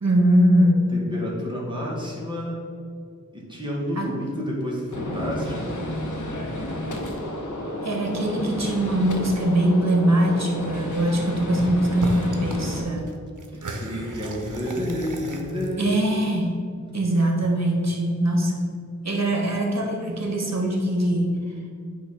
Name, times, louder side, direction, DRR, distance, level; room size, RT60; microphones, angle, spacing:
voice 1, 0.0-0.9 3.9-4.1 7.8-13.2 15.8-16.7 16.9-18.7 19.0-21.4, right 1 dB, 60° right, 0 dB, 1.4 m, -22 dB
voice 2, 0.9-2.6 3.3-5.9 13.5-16.1, equal, 15° right, -5 dB, 1.9 m, -30 dB
Gunshot gunfire, 4.9-12.8, left 1 dB, 75° left, 1.1 m, -31 dB
sound 1, 11.5-11.7 12.0-12.6 12.9-16.3, right 2 dB, 80° right, 0.7 m, -34 dB
9.0 x 3.1 x 5.8 m, 2.2 s
wide cardioid pair, 55°, 31 cm